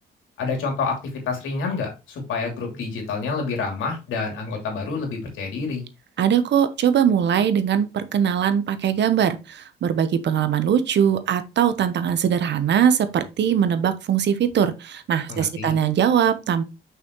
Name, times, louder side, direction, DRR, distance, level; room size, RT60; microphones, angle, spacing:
voice 1, 0.4-1.0 1.2-5.8 15.3-15.7, left 4 dB, 85° left, 2.9 m, -28 dB
voice 2, 6.2-16.7, right 8 dB, 60° right, 1.0 m, -21 dB
5.9 x 5.8 x 3.1 m
cardioid pair, 90°, 20 cm